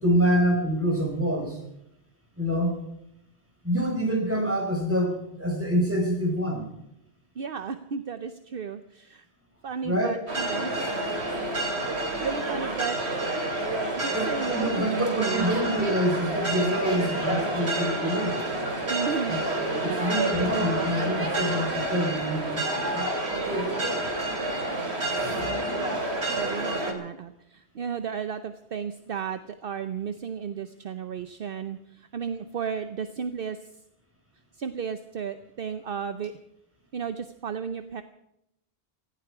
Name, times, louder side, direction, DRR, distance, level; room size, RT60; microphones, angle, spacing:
voice 1, 0.0-1.6 2.4-2.8 3.6-6.7 9.8-10.2 14.1-18.6 19.3-19.6 19.8-22.6 22.9-24.1 25.1-25.5, equal, 10° right, 1 dB, 4.6 m, -26 dB
voice 2, 7.4-9.2 9.6-10.8 11.9-13.0 14.0-15.5 18.9-19.4 19.9-20.6 26.4-33.6 34.6-36.3 36.9-38.0, right 7 dB, 60° right, 10 dB, 0.9 m, -34 dB
sound 1, 10.3-26.9, right 2 dB, 90° right, 2.8 m, -29 dB
18.0 x 15.0 x 4.9 m, 0.79 s
omnidirectional pair, 1.1 m